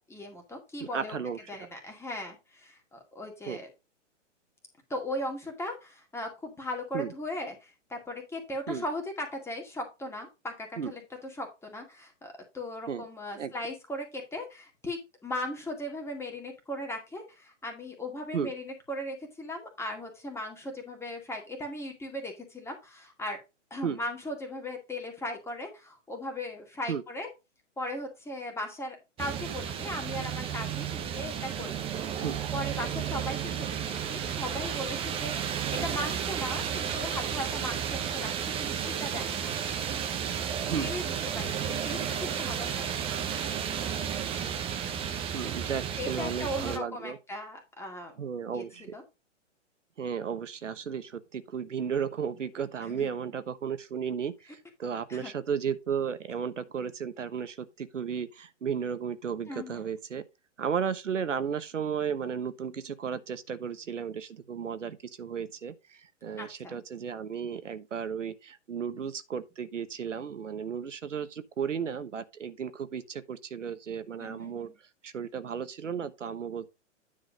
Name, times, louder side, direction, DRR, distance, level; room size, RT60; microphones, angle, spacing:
voice 1, 0.0-1.2 1.5-3.7 4.9-23.4 23.7-27.3 27.8-32.2 32.5-39.9 40.8-42.9 46.0-48.1 48.5-49.0 52.8-53.1 55.1-55.3 59.5-59.9 66.4-66.8 74.2-74.8, left 1 dB, 5° left, 2.1 m, -38 dB
voice 2, 0.8-1.4 3.5-3.6 6.9-7.1 8.7-8.8 10.8-10.9 12.9-13.0 13.3-13.5 18.3-18.5 23.8-24.0 26.9-27.0 32.2-32.4 40.6-41.0 45.3-47.2 48.2-48.9 50.0-60.2 60.6-74.7 75.0-76.7, right 7 dB, 75° right, 1.1 m, -34 dB
sound 1, 29.2-46.8, right 8 dB, 15° right, 0.8 m, -33 dB
9.7 x 3.9 x 5.0 m
figure-of-eight pair, 120°, 37 cm